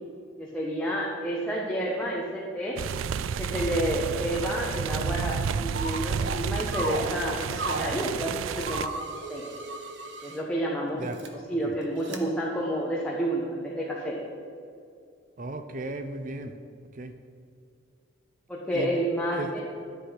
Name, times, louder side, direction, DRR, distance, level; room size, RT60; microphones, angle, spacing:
voice 1, 0.4-2.8 3.4-9.4 10.2-14.2 18.5-19.6, right 1 dB, 5° left, -4 dB, 1.3 m, -30 dB
sound 1, 2.8-8.9, right 6 dB, 85° right, 0.4 m, -31 dB
sound 2, 5.7-6.4 6.7-8.1 8.6-10.4 11.0-11.3 12.0-12.2, right 2 dB, 60° right, 1.2 m, -35 dB
voice 2, 10.9-11.4 15.4-16.5 16.9-17.1 18.7-18.9 19.3-19.6, right 2 dB, 40° right, 8 dB, 0.6 m, -35 dB
12.0 x 8.4 x 5.8 m, 2.4 s
head